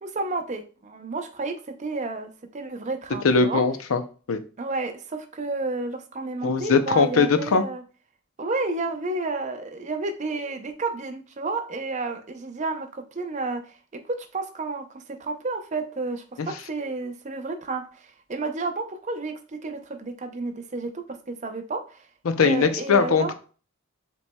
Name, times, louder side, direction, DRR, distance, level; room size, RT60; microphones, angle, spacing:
voice 1, 0.0-3.6 4.6-7.8 8.4-13.6 13.9-22.1 22.4-23.3, right 3 dB, 35° right, 7 dB, 0.5 m, -31 dB
voice 2, 3.2-4.0 4.3-4.4 6.4-7.6 16.4-16.5 22.3-23.3, left 5 dB, 80° left, 9 dB, 0.5 m, -20 dB
7.0 x 3.0 x 2.2 m, 0.38 s
head